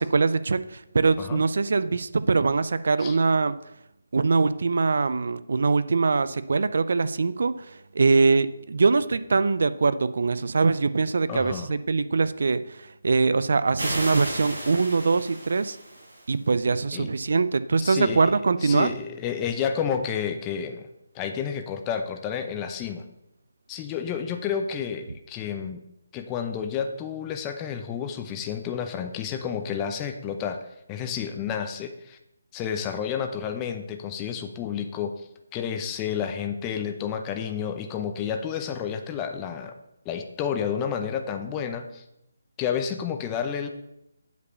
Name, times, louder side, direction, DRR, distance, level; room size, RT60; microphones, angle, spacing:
voice 1, 0.0-3.5 4.1-7.6 7.9-15.8 16.3-18.9, right 4 dB, 65° right, 14 dB, 0.5 m, -23 dB
voice 2, 11.3-11.7 16.9-17.1 17.8-18.3 18.6-20.9 21.1-23.0 23.7-25.8 26.1-30.6 30.9-32.2 32.5-39.7 40.0-42.0 42.6-43.7, left 7 dB, 20° left, 5 dB, 0.7 m, -30 dB
sound 1, 13.8-16.3, right 1 dB, 80° right, 3.9 m, -34 dB
8.1 x 4.9 x 6.9 m, 0.83 s
figure-of-eight pair, 155°, 0 cm